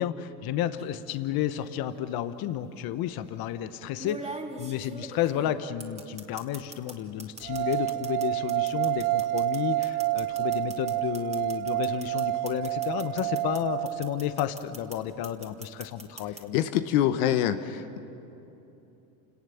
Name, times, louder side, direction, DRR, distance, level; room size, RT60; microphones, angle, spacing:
voice 1, 0.0-16.6, left 11 dB, 55° left, 11 dB, 1.1 m, -32 dB
sound 1, 0.8-1.1 2.3-2.4 4.0-6.9 7.2-13.6 13.9-15.0 15.2-16.4, right 2 dB, 15° right, 2.7 m, -42 dB
sound 2, 7.4-14.6, right 17 dB, 75° right, 0.7 m, -29 dB
voice 2, 16.5-18.0, left 11 dB, 75° left, 9 dB, 1.2 m, -25 dB
28.5 x 18.5 x 7.1 m, 2.9 s
hypercardioid pair, 85°, 43 cm